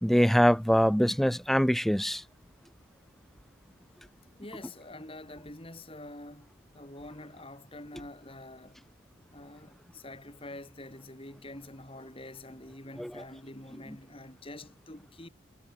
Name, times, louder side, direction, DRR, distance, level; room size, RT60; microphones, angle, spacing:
voice 1, 0.0-2.2 13.0-13.1, equal, ahead, 0.4 m, -23 dB
voice 2, 4.4-8.8 9.3-15.3, left 1 dB, 25° left, 3.9 m, -46 dB
head